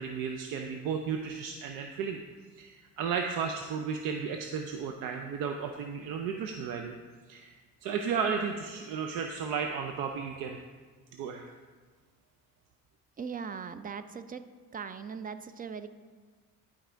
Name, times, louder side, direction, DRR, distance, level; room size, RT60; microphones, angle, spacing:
voice 1, 0.0-2.2 2.6-6.9 7.3-7.5 7.8-10.6 11.1-11.4, right 6 dB, 85° right, 4 dB, 0.6 m, -34 dB
voice 2, 13.2-14.4 14.7-15.9, right 6 dB, 25° right, 11 dB, 0.4 m, -39 dB
11.0 x 4.9 x 3.4 m, 1.5 s
cardioid pair, 95°, 33 cm